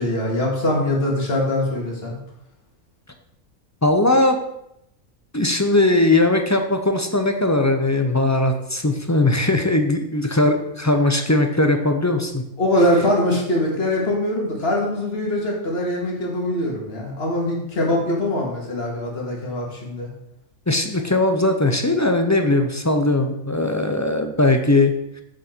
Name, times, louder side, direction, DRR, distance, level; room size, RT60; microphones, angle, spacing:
voice 1, 0.0-2.2 12.6-20.1, left 1 dB, 45° left, -1 dB, 2.3 m, -22 dB
voice 2, 3.8-4.4 5.3-12.4 20.7-24.9, left 2 dB, 20° left, 6 dB, 0.4 m, -19 dB
7.6 x 7.1 x 4.5 m, 0.80 s
omnidirectional pair, 1.4 m